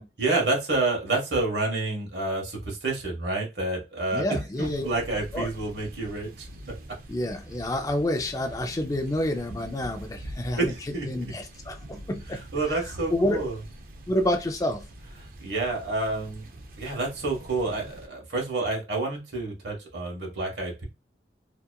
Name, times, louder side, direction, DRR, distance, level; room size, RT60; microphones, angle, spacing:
voice 1, 0.0-6.5 10.6-11.3 12.5-13.6 15.4-16.5 16.8-20.8, right 2 dB, 70° right, 1.1 m, -29 dB
voice 2, 4.1-4.9 5.3-5.5 7.1-10.7 11.1-12.8 13.1-13.5 14.1-14.9, left 1 dB, 20° left, 0.3 m, -28 dB
sound 1, 4.5-18.1, right 1 dB, 50° right, 0.4 m, -44 dB
2.8 x 2.3 x 2.2 m
head